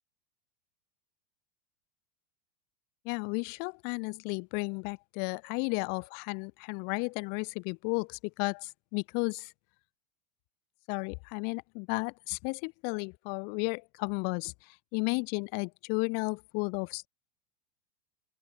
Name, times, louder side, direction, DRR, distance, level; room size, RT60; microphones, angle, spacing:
voice 1, 3.0-9.5 10.9-17.1, left 36 dB, 50° left, 7.3 m, -33 dB
open air
figure-of-eight pair, 85°, 21 cm